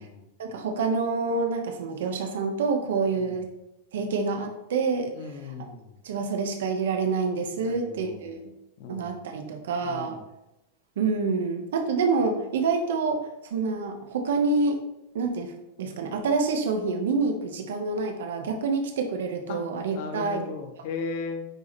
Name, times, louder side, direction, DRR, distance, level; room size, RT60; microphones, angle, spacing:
voice 1, 0.4-3.4 3.9-5.5 6.0-8.4 8.9-10.2 11.0-14.8 15.1-15.5 15.8-20.4, right 4 dB, 85° right, 4 dB, 1.1 m, -27 dB
voice 2, 5.1-5.9 7.6-8.4 8.8-9.2 9.8-10.2 19.5-19.6 19.9-21.5, left 5 dB, 55° left, 5 dB, 1.2 m, -37 dB
9.3 x 3.2 x 4.2 m, 0.89 s
supercardioid pair, 165°, 0 cm